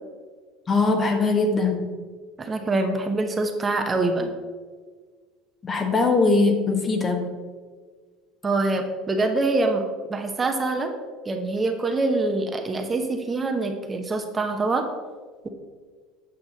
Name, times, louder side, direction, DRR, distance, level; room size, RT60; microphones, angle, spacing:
voice 1, 0.7-1.8 5.6-7.2, left 3 dB, 30° left, 4 dB, 1.3 m, -21 dB
voice 2, 2.4-4.3 8.4-9.8 10.1-10.9 11.2-14.8, right 2 dB, 25° right, 4 dB, 0.9 m, -25 dB
8.3 x 5.7 x 4.0 m, 1.5 s
supercardioid pair, 90°, 0 cm